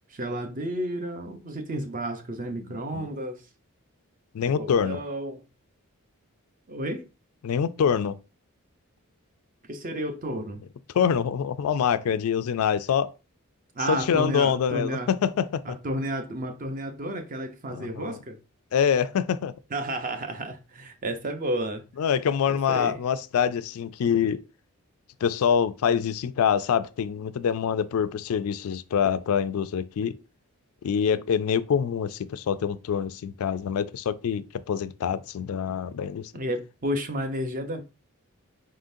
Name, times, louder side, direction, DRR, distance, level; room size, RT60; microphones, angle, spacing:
voice 1, 0.1-3.4 4.5-5.4 6.7-7.0 9.7-10.6 13.7-15.1 15.6-18.4 19.7-21.8 22.5-23.0 35.7-35.8 36.3-37.8, right 1 dB, 40° right, 0.6 m, -31 dB
voice 2, 4.3-5.0 7.4-8.2 10.9-13.1 13.9-15.8 17.7-18.2 18.7-19.5 22.0-24.4 25.2-30.1 30.8-36.3, left 7 dB, 75° left, 0.3 m, -25 dB
4.1 x 3.7 x 2.6 m
head